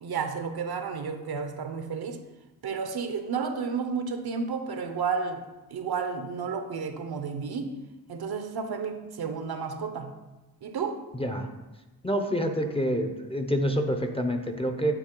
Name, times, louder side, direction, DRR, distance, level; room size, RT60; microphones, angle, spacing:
voice 1, 0.0-2.2 2.6-5.5 5.7-7.7 8.1-10.2 10.6-11.0, right 5 dB, 70° right, 0.7 m, -32 dB
voice 2, 11.1-11.5 12.0-14.9, equal, 15° left, 0.5 m, -27 dB
9.2 x 3.7 x 3.7 m
wide cardioid pair, 100°, 40 cm